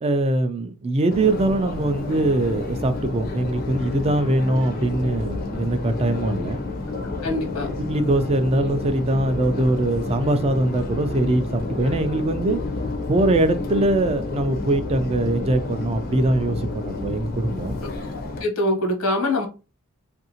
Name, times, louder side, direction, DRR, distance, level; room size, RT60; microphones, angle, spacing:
voice 1, 0.0-6.6 7.8-12.6 13.1-17.7, right 1 dB, 30° right, 0.3 m, -22 dB
Subway metro underground, 1.1-18.4, left 3 dB, 40° left, 0.5 m, -30 dB
voice 2, 7.2-7.7 18.1-19.5, left 1 dB, 90° left, 1.1 m, -24 dB
2.8 x 2.6 x 2.8 m
head